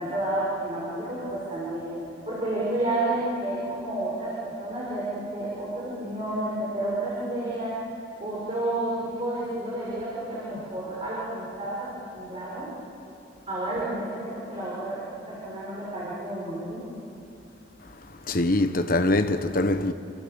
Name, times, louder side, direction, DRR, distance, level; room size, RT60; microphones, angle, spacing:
voice 1, 0.0-1.9 2.2-7.7 8.2-12.7 13.5-15.0 15.3-16.8, right 1 dB, 30° right, 6.2 m, -30 dB
voice 2, 18.2-19.9, left 2 dB, 50° left, 1.3 m, -23 dB
28.5 x 26.5 x 7.1 m
head